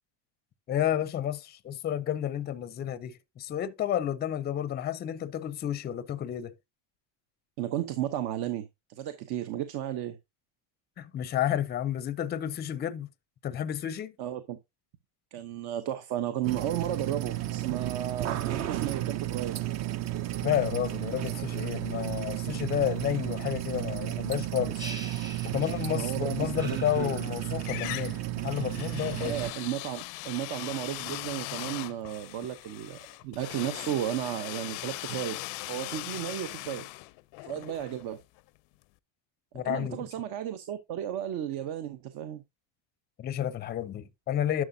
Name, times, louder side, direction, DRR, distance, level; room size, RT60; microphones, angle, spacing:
voice 1, 0.7-6.5 11.0-13.1 13.4-14.1 20.4-24.9 25.4-29.4 39.5-40.1 43.2-44.6, left 11 dB, 25° left, 0.5 m, -31 dB
voice 2, 7.6-10.2 14.2-14.6 15.3-19.6 25.9-27.1 29.2-35.4 35.7-36.8 37.4-38.2 39.6-42.4, right 11 dB, 60° right, 0.9 m, -34 dB
sound 1, 16.4-29.5, right 14 dB, 40° right, 0.5 m, -33 dB
sound 2, 24.8-26.1 26.6-27.8, right 2 dB, 10° right, 0.8 m, -44 dB
sound 3, 26.7-27.3 27.6-38.5, left 23 dB, 85° left, 0.6 m, -40 dB
11.0 x 6.1 x 2.6 m
cardioid pair, 155°, 43 cm